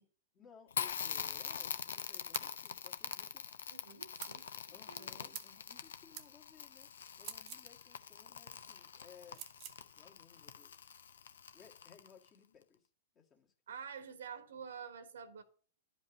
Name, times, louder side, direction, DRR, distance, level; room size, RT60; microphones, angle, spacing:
voice 1, 0.3-3.4 4.7-6.9 7.2-9.4 10.0-10.9 11.5-12.9 13.1-13.5, left 6 dB, 30° left, 1.9 m, -61 dB
Crackle, 0.7-12.3, left 7 dB, 70° left, 0.7 m, -44 dB
sound 1, 2.3-2.5 4.2-4.4 5.3-5.6 6.1-6.3 7.2-7.7 9.3-9.8, right 11 dB, 40° right, 1.0 m, -47 dB
voice 2, 3.7-5.4 13.7-15.4, right 6 dB, 70° right, 1.3 m, -49 dB
11.0 x 5.2 x 5.2 m
figure-of-eight pair, 105°, 0 cm